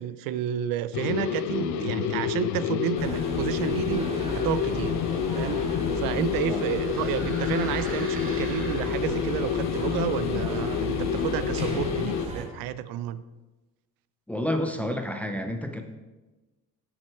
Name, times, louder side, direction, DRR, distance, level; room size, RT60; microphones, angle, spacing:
voice 1, 0.0-5.0 5.3-13.2, right 10 dB, 80° right, 15 dB, 0.5 m, -31 dB
sound 1, 0.9-12.3, left 9 dB, 60° left, 0.5 m, -29 dB
sound 2, 3.0-12.4, right 1 dB, 15° right, 1.3 m, -35 dB
sound 3, 5.0-9.4, right 2 dB, 40° right, 2.2 m, -43 dB
voice 2, 14.3-15.8, left 1 dB, 5° left, 6 dB, 0.4 m, -29 dB
7.5 x 7.5 x 4.5 m, 1.2 s
cardioid pair, 165°, 34 cm